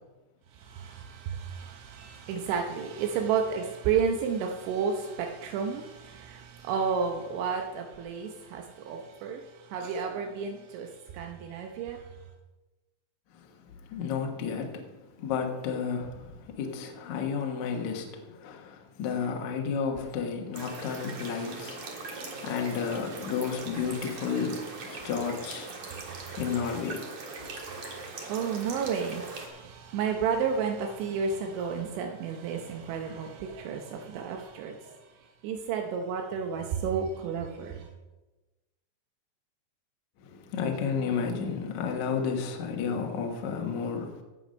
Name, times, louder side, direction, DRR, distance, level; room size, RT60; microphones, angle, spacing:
voice 1, 0.6-12.0 25.0-25.1 25.9-26.4 27.4-35.0 35.4-37.9, right 6 dB, 80° right, 3.2 m, -32 dB
voice 2, 13.3-25.8 26.4-27.1 40.2-44.2, left 6 dB, 70° left, 1.8 m, -32 dB
sound 1, 20.5-29.5, right 3 dB, 65° right, 1.5 m, -41 dB
17.0 x 5.8 x 5.2 m
omnidirectional pair, 5.3 m